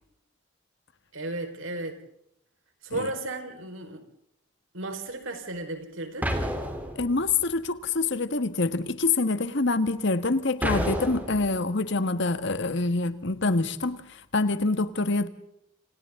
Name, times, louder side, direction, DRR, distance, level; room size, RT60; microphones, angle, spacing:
voice 1, 1.1-2.0 2.8-4.0 4.7-6.3, right 2 dB, 90° right, 6 dB, 4.8 m, -34 dB
sound 1, 6.2-7.4 10.6-11.6, equal, 10° right, 3.5 m, -30 dB
voice 2, 6.9-14.0 14.3-15.3, left 3 dB, 60° left, 11 dB, 1.6 m, -26 dB
29.5 x 28.0 x 3.8 m, 0.80 s
head